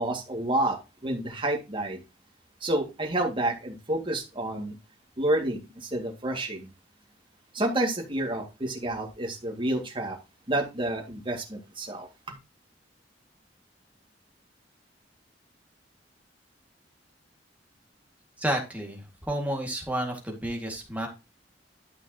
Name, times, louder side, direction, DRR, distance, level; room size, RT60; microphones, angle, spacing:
voice 1, 0.0-2.0 2.6-4.7 5.2-6.7 7.5-10.2 10.5-12.4, right 1 dB, 30° right, 2.1 m, -29 dB
voice 2, 18.4-21.1, right 1 dB, 10° right, 2.0 m, -31 dB
12.0 x 5.7 x 2.9 m
head